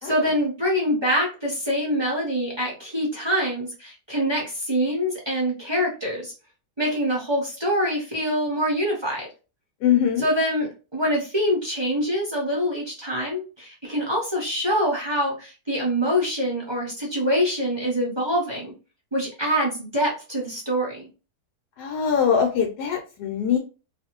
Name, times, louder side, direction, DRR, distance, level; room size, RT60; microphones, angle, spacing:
voice 1, 0.0-6.3 6.8-9.3 10.2-18.7 19.1-21.1, equal, 30° right, -3 dB, 0.5 m, -25 dB
voice 2, 9.8-10.2 21.8-23.6, left 8 dB, 80° left, 1 dB, 1.2 m, -22 dB
2.6 x 2.5 x 2.9 m, 0.33 s
omnidirectional pair, 1.8 m